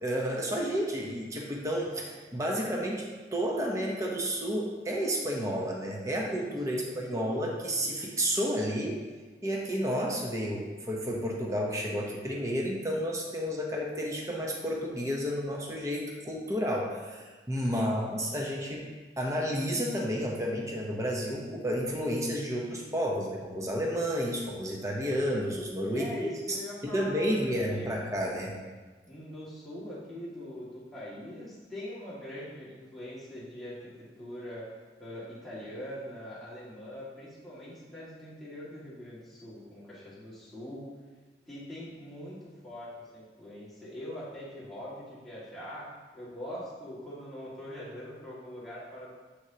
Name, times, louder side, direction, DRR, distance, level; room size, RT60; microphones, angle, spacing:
voice 1, 0.0-3.1 3.3-9.0 9.4-18.8 19.2-26.1 26.5-26.6 26.8-28.5, equal, 20° right, -2 dB, 0.8 m, -31 dB
voice 2, 6.6-7.3 17.7-18.0 25.9-27.9 29.1-33.8 34.2-34.7 35.0-40.9 41.5-42.4 42.6-45.9 46.1-49.1, left 1 dB, ahead, -11 dB, 2.0 m, -42 dB
7.9 x 6.4 x 2.9 m, 1.3 s
head